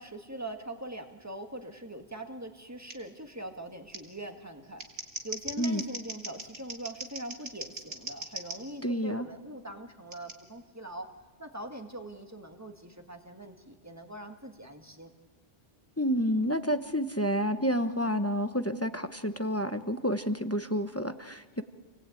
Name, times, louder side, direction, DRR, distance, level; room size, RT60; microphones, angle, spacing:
voice 1, 0.0-4.9 5.2-11.1 11.4-15.1, right 1 dB, 15° right, 5 dB, 1.9 m, -42 dB
Scissors, 2.9-3.0 3.9-4.0 4.6-8.6 10.1-10.3, right 2 dB, 65° right, 2.6 m, -40 dB
voice 2, 8.8-9.3 16.0-21.6, equal, 15° left, 9 dB, 0.9 m, -29 dB
28.0 x 19.0 x 9.1 m, 1.4 s
omnidirectional pair, 1.1 m